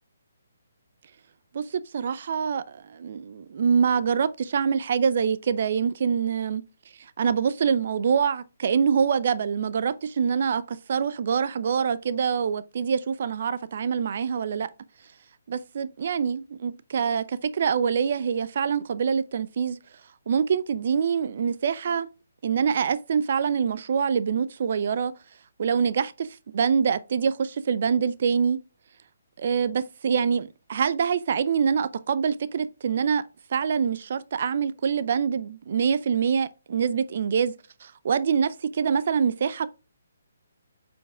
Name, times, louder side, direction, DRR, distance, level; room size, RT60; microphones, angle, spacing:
voice 1, 1.5-6.6 7.0-14.7 15.5-19.8 20.3-22.1 22.4-25.1 25.6-28.6 29.4-33.2 33.5-37.5 37.8-38.5 38.8-39.7, right 6 dB, 55° right, 0.4 m, -25 dB
8.5 x 5.1 x 2.3 m
hypercardioid pair, 145°, 0 cm